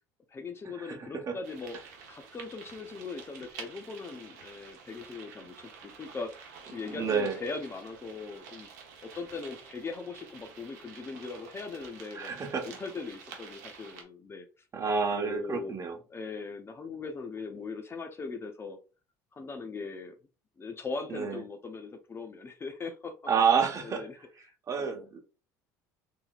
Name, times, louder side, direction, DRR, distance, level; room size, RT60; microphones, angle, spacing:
voice 1, 0.3-1.8 2.1-8.7 9.0-12.4 12.6-14.5 15.2-15.8 16.1-18.8 19.3-20.1 20.6-23.1 23.5-24.2 24.4-24.5 24.8-25.1, left 4 dB, 25° left, 6 dB, 0.6 m, -40 dB
voice 2, 0.9-1.3 6.9-7.4 12.1-12.7 14.7-16.0 21.1-21.4 23.3-24.0 24.7-25.2, right 6 dB, 35° right, 4 dB, 1.0 m, -29 dB
sound 1, 1.4-14.0, right 6 dB, 80° right, 0.9 m, -49 dB
3.9 x 2.9 x 2.3 m, 0.34 s
hypercardioid pair, 75°, 9 cm